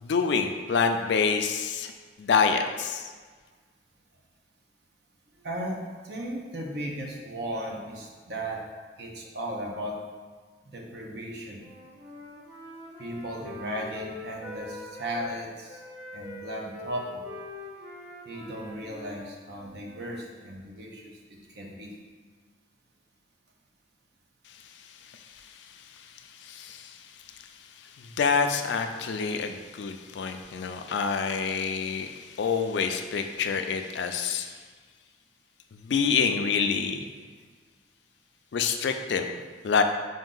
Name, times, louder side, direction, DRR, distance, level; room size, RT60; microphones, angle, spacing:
voice 1, 0.0-1.9 2.2-3.0 26.4-27.0 28.0-34.5 35.8-37.0 38.5-39.3 39.6-39.8, left 5 dB, 70° left, 6 dB, 0.4 m, -27 dB
voice 2, 5.4-8.6 9.0-10.0 10.7-11.7 13.0-15.8 16.1-17.2 18.2-21.9, right 1 dB, 60° right, -1 dB, 0.7 m, -36 dB
Wind instrument woodwind instrument, 11.6-15.4 15.7-20.2, left 2 dB, 10° right, 0.9 m, -44 dB
5.3 x 2.6 x 3.8 m, 1.5 s
head